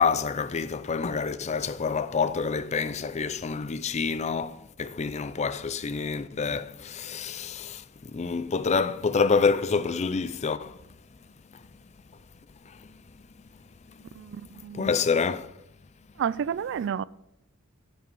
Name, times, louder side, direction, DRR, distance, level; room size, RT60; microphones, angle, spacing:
voice 1, 0.0-10.8 14.7-15.5, left 5 dB, 30° left, 0.4 m, -27 dB
voice 2, 14.2-15.0 16.2-17.0, right 8 dB, 60° right, 0.3 m, -31 dB
10.5 x 5.5 x 6.9 m
head